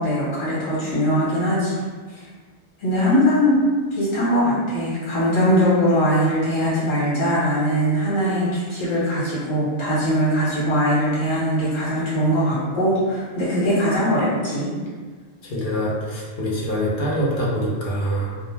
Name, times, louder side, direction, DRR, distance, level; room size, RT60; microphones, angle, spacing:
voice 1, 0.0-1.7 2.1-2.2 2.8-3.6 3.9-14.7, equal, 75° left, -9 dB, 1.2 m, -21 dB
voice 2, 15.4-18.4, equal, 55° left, -5 dB, 0.5 m, -24 dB
2.3 x 2.1 x 3.1 m, 1.5 s
omnidirectional pair, 1.3 m